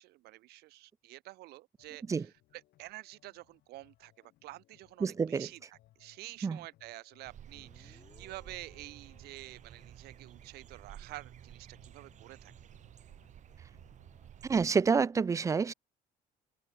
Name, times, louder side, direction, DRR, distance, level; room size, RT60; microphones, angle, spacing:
voice 1, 0.0-2.2 2.5-5.6 6.0-12.5, right 18 dB, 80° right, 0.8 m, -49 dB
sound 1, 1.8-14.9, left 15 dB, 75° left, 6.4 m, -69 dB
voice 2, 5.0-5.5 6.4-6.6 14.4-15.7, right 5 dB, 20° right, 0.3 m, -28 dB
sound 2, 7.2-14.7, right 10 dB, 50° right, 1.1 m, -53 dB
Guitar, 7.5-11.0, left 5 dB, 30° left, 3.4 m, -65 dB
open air
cardioid pair, 115°, 16 cm